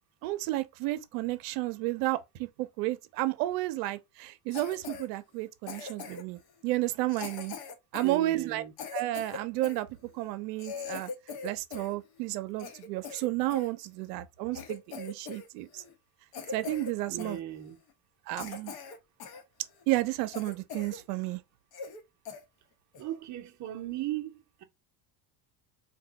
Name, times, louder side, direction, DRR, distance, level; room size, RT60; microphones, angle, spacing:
voice 1, 0.2-7.5 7.9-8.6 8.9-9.9 10.1-11.1 11.4-15.8 16.5-17.4 18.3-18.7 19.9-21.4, right 17 dB, 80° right, 0.6 m, -32 dB
Cough, 4.5-5.1 5.7-6.4 7.1-9.8 10.3-10.4 10.6-12.0 12.3-13.7 14.2-14.3 14.5-15.5 15.7-15.9 16.3-16.9 17.2-17.4 17.9-18.0 18.4-19.4 19.8-19.9 20.3-21.0 21.3-21.4 21.7-22.0 22.3-22.4 22.9-23.2, left 5 dB, 50° left, 0.9 m, -41 dB
voice 2, 8.0-8.7 17.1-17.8 23.0-24.6, right 13 dB, 40° right, 0.7 m, -37 dB
2.6 x 2.2 x 3.8 m
supercardioid pair, 100°, 48 cm